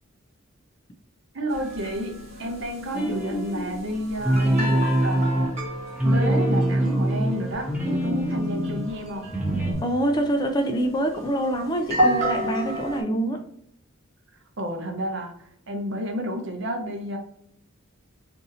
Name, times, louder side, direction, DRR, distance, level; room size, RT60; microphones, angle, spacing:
voice 1, 1.3-5.6 6.0-9.3 14.6-17.2, equal, 60° right, 3 dB, 0.7 m, -31 dB
sound 1, 1.5-13.0, equal, 30° right, 1.0 m, -32 dB
sound 2, 2.9-3.8 4.2-8.8 9.2-9.7, right 1 dB, 5° right, 0.7 m, -24 dB
voice 2, 9.8-13.4, right 1 dB, 20° left, 5 dB, 0.3 m, -25 dB
2.7 x 2.5 x 4.0 m, 0.68 s
head